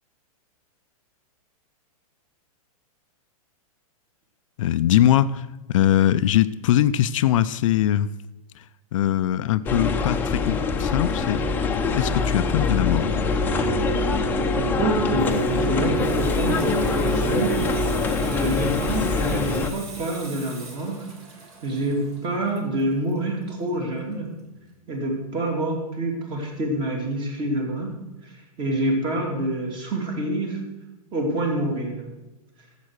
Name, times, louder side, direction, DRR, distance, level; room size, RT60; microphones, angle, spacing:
voice 1, 4.6-8.1 8.6-8.7 8.9-11.4 12.0-13.1, left 12 dB, 60° left, 0.4 m, -21 dB
sound 1, 9.6-19.7, left 3 dB, 10° left, 0.7 m, -23 dB
voice 2, 14.5-17.6 18.2-21.1 21.6-24.3 24.9-27.9 28.2-28.3 28.6-30.6 31.1-32.1, right 1 dB, 25° right, 2.6 m, -27 dB
Water tap faucet / Sink (filling or washing), 14.8-24.1 24.4-24.7, right 3 dB, 45° right, 3.0 m, -43 dB
12.0 x 7.5 x 6.5 m
hypercardioid pair, 150°, 19 cm